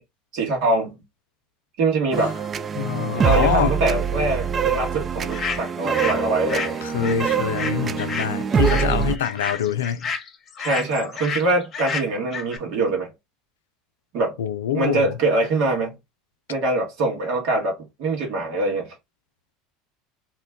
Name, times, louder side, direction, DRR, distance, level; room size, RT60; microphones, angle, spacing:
voice 1, 0.3-0.9 1.8-2.4 3.2-6.8 10.6-13.1 14.1-14.4 14.7-16.0 16.5-18.9, right 2 dB, 65° right, 1.5 m, -23 dB
sound 1, 2.1-9.2, right 7 dB, 35° right, 0.3 m, -24 dB
voice 2, 2.8-3.8 6.8-10.1 14.4-15.1, left 9 dB, 85° left, 0.4 m, -25 dB
sound 2, 5.3-6.2 6.5-12.6, left 5 dB, 40° left, 0.9 m, -31 dB
3.0 x 2.2 x 3.5 m
hypercardioid pair, 85°, 0 cm